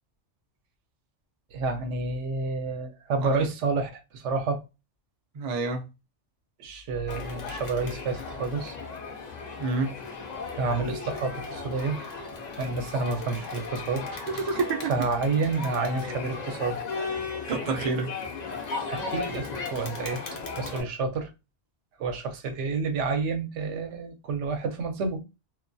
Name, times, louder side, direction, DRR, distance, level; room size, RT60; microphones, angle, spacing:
voice 1, 1.5-4.6 6.6-8.7 10.6-12.0 12.6-14.1 14.9-16.8 18.9-20.2 20.6-21.3 22.0-25.2, right 4 dB, 80° right, 0.9 m, -29 dB
voice 2, 5.3-5.9 9.6-10.0 14.3-14.9 17.5-18.1, right 4 dB, 55° right, 0.4 m, -28 dB
Crowd, 7.1-20.8, left 4 dB, 55° left, 0.5 m, -36 dB
2.3 x 2.2 x 2.5 m
omnidirectional pair, 1.2 m